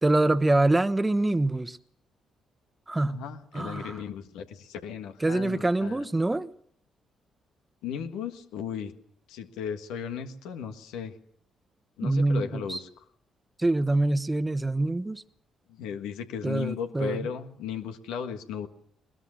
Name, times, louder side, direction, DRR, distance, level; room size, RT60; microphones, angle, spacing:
voice 1, 0.0-1.8 2.9-3.2 3.5-4.0 5.2-6.5 12.0-12.8 13.6-15.2 16.4-17.2, right 2 dB, 20° right, 1.2 m, -25 dB
voice 2, 3.1-6.0 7.8-8.9 9.3-11.1 12.0-13.0 15.7-18.7, left 7 dB, 80° left, 1.6 m, -36 dB
21.0 x 21.0 x 6.4 m
hypercardioid pair, 50°, 0 cm